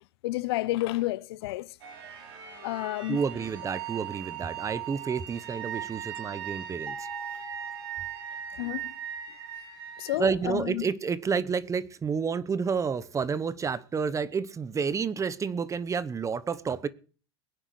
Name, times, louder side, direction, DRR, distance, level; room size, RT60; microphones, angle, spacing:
voice 1, 0.2-1.7 2.6-3.2 8.6-8.9 10.0-10.9, left 17 dB, 70° left, 0.6 m, -30 dB
sound 1, 1.8-10.2, right 10 dB, 75° right, 6.1 m, -39 dB
voice 2, 3.1-6.9 10.2-16.9, right 5 dB, 20° right, 0.9 m, -30 dB
sound 2, 6.9-9.1, left 1 dB, 10° left, 1.7 m, -45 dB
22.5 x 10.0 x 3.2 m
hypercardioid pair, 90°, 14 cm